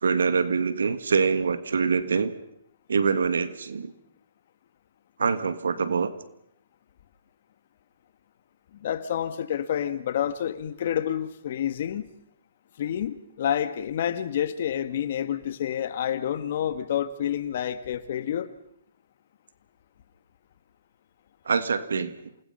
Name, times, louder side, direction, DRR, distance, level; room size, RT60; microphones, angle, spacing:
voice 1, 0.0-2.3 2.9-3.9 5.2-6.1 21.4-22.1, right 5 dB, 80° right, 12 dB, 1.6 m, -24 dB
voice 2, 8.8-12.0 12.8-18.5, left 10 dB, 55° left, 12 dB, 1.6 m, -28 dB
28.0 x 19.5 x 5.6 m, 0.72 s
hypercardioid pair, 145°, 0 cm